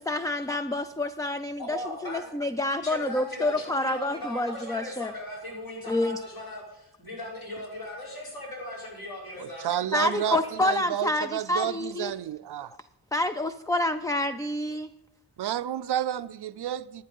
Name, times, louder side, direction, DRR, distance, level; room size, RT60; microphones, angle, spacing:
voice 1, 0.1-5.1 5.9-6.2 9.9-12.1 13.1-14.9, left 2 dB, 10° left, 0.3 m, -28 dB
voice 2, 1.6-2.3 2.8-10.6, left 1 dB, 60° left, 5.6 m, -38 dB
voice 3, 9.4-12.7 15.4-17.0, right 11 dB, 70° right, 0.5 m, -31 dB
11.0 x 9.2 x 5.4 m
wide cardioid pair, 100°, 42 cm